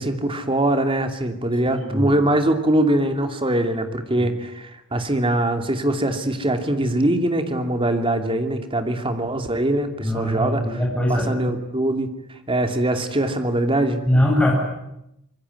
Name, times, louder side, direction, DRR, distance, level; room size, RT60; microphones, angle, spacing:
voice 1, 0.0-10.8 11.1-12.1 12.5-14.0, right 1 dB, 25° right, 6 dB, 2.7 m, -22 dB
voice 2, 10.0-11.3 14.1-14.5, left 1 dB, 5° left, -2 dB, 7.9 m, -20 dB
25.5 x 22.5 x 9.8 m, 0.85 s
head